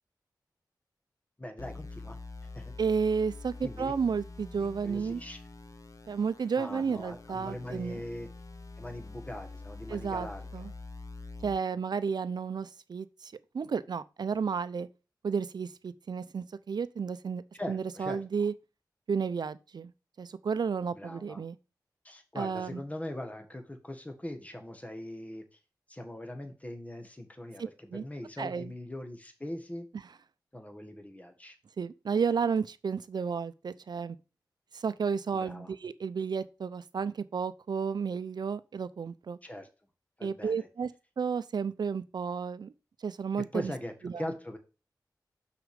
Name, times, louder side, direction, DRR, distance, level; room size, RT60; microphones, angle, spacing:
voice 1, 1.4-2.2 2.5-2.7 3.6-3.9 4.6-5.4 6.6-8.3 8.8-10.6 17.5-18.5 20.9-21.4 22.0-25.4 25.9-29.9 30.5-31.6 35.3-35.7 39.4-39.7 40.2-40.7 43.5-44.6, left 1 dB, 20° left, 1.6 m, -41 dB
sound 1, 1.6-11.6, left 3 dB, 45° left, 0.9 m, -46 dB
voice 2, 2.8-5.2 6.1-8.0 9.9-10.3 10.5-10.7 11.4-14.9 15.2-17.4 17.7-18.5 19.1-19.9 20.2-21.6 22.4-22.8 27.9-28.0 28.4-28.7 31.8-34.2 34.7-39.4 40.2-40.9 41.2-42.7 43.0-43.7 44.0-44.3, right 6 dB, 70° right, 0.6 m, -32 dB
6.2 x 5.0 x 5.1 m
wide cardioid pair, 65°, 7 cm